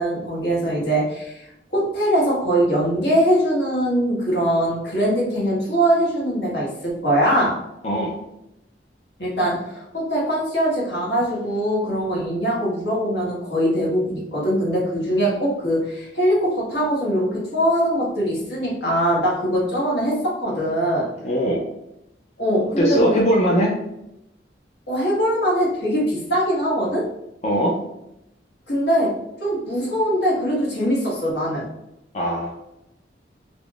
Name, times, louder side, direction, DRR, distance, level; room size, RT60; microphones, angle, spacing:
voice 1, 0.0-1.4 1.7-7.5 9.2-21.1 22.4-23.2 24.9-27.0 28.7-29.1 29.4-31.6, equal, 70° left, -5 dB, 1.4 m, -22 dB
voice 2, 7.8-8.1 21.2-21.6 22.8-23.7 27.4-27.8 32.1-32.5, equal, 40° left, -3 dB, 0.4 m, -20 dB
3.4 x 3.0 x 2.4 m, 0.85 s
head